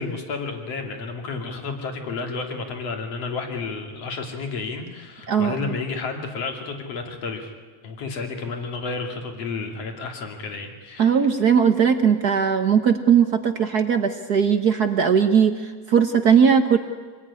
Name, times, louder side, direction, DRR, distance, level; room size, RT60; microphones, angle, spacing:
voice 1, 0.0-7.5 7.8-11.2, left 4 dB, 55° left, 4 dB, 3.7 m, -31 dB
voice 2, 5.3-5.7 11.0-16.8, right 7 dB, 60° right, 7 dB, 1.0 m, -19 dB
26.0 x 21.0 x 9.8 m, 1.5 s
omnidirectional pair, 3.4 m